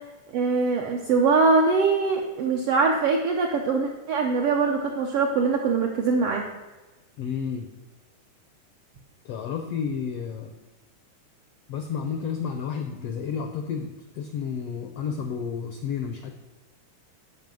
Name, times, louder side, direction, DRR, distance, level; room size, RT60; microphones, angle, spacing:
voice 1, 0.3-6.4, right 4 dB, 75° right, 2 dB, 1.3 m, -22 dB
voice 2, 7.2-7.6 9.2-10.5 11.7-16.3, left 6 dB, 80° left, 5 dB, 1.3 m, -31 dB
9.1 x 5.6 x 7.6 m, 1.2 s
omnidirectional pair, 3.6 m